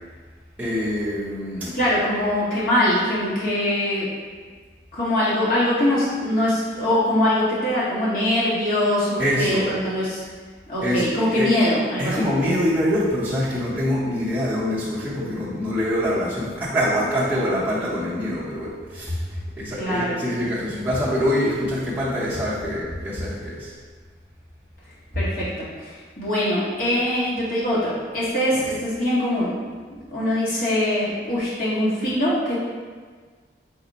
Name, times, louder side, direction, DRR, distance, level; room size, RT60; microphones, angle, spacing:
voice 1, 0.6-1.8 9.2-9.7 10.8-11.1 11.4-11.5 12.0-19.2 19.6-23.7, equal, 10° right, -11 dB, 0.7 m, -24 dB
voice 2, 1.7-4.1 4.9-10.2 10.7-12.3 19.8-20.2 25.1-29.5 30.1-32.6, left 1 dB, 50° left, -9 dB, 1.2 m, -22 dB
4.1 x 2.1 x 4.0 m, 1.5 s
head